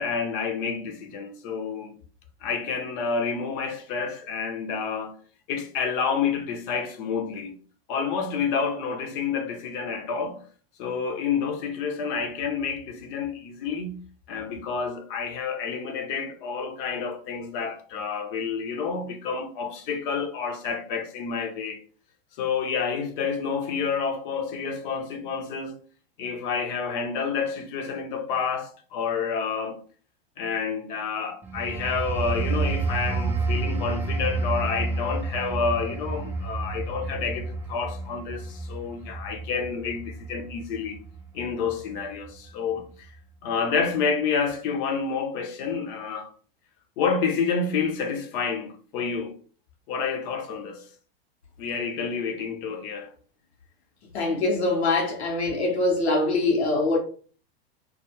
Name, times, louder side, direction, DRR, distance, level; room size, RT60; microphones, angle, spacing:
voice 1, 0.0-1.9 2.4-5.1 5.5-7.6 7.9-10.4 10.8-14.0 14.3-21.8 22.4-25.8 26.2-29.8 30.4-41.0 41.3-42.9 43.4-46.3 47.0-49.3 49.9-50.9 51.6-53.1, left 5 dB, 55° left, 0.7 m, -29 dB
sound 1, 31.4-41.8 42.2-42.5, right 3 dB, 5° right, 0.3 m, -30 dB
voice 2, 54.1-57.0, left 2 dB, 85° left, 0.9 m, -23 dB
2.4 x 2.3 x 2.9 m
hypercardioid pair, 105°, 31 cm